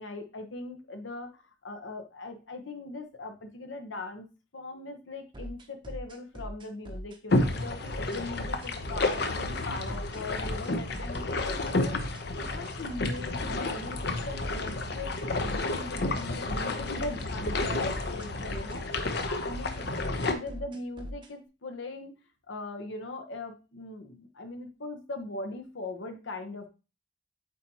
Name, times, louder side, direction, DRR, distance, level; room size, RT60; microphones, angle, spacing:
voice 1, 0.0-4.3 4.5-12.0 12.4-22.2 22.5-26.7, left 2 dB, 70° left, 6 dB, 1.1 m, -40 dB
sound 1, 5.3-21.3, equal, 25° right, 0.8 m, -41 dB
sound 2, 7.3-20.3, left 2 dB, 55° left, 0.8 m, -31 dB
8.3 x 4.2 x 2.9 m, 0.31 s
head